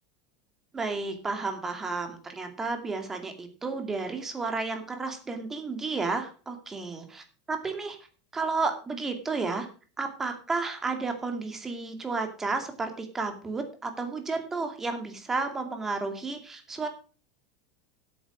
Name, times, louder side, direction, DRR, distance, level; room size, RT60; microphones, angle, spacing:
voice 1, 0.7-8.0 8.3-9.7 10.0-16.9, right 3 dB, 15° right, 6 dB, 2.3 m, -32 dB
10.0 x 8.8 x 6.1 m, 0.39 s
supercardioid pair, 150°, 3 cm